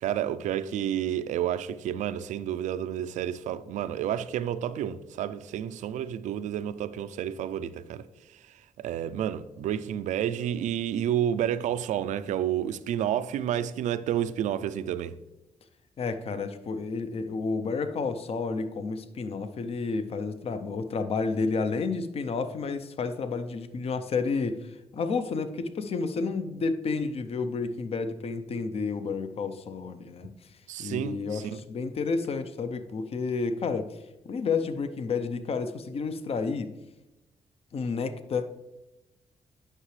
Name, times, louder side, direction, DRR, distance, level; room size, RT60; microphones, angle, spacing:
voice 1, 0.0-8.0 8.8-15.1 30.7-31.6, right 10 dB, 90° right, 0.4 m, -30 dB
voice 2, 16.0-30.3 30.8-34.0 34.2-36.7 37.7-38.5, left 4 dB, 55° left, 0.6 m, -31 dB
9.8 x 5.8 x 3.2 m
cardioid pair, 75°, 12 cm